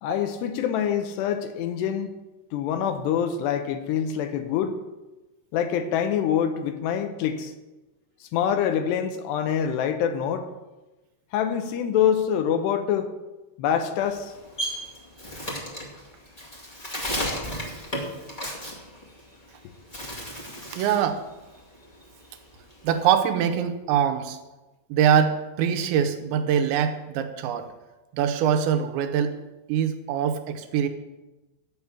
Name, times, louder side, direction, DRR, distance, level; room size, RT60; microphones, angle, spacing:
voice 1, 0.0-2.2 2.5-4.8 5.5-7.5 8.2-10.5 11.3-13.1 13.6-14.3, left 8 dB, 80° left, 8 dB, 2.8 m, -25 dB
Bird, 14.0-19.5 19.8-21.1 21.5-23.2, equal, 50° left, 0.4 m, -34 dB
voice 2, 20.7-21.2 22.8-24.4 24.9-27.7 28.1-29.3 29.7-30.9, right 8 dB, 85° right, 8 dB, 3.2 m, -23 dB
12.0 x 6.0 x 8.5 m, 1.1 s
omnidirectional pair, 5.1 m